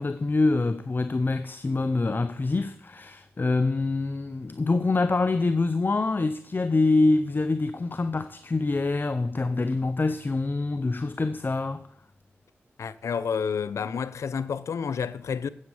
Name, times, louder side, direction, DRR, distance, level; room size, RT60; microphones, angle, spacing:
voice 1, 0.0-11.9, left 3 dB, 45° left, 0.7 m, -25 dB
voice 2, 12.8-15.5, left 6 dB, 90° left, 0.7 m, -29 dB
13.0 x 8.7 x 7.1 m
cardioid pair, 50°, 5 cm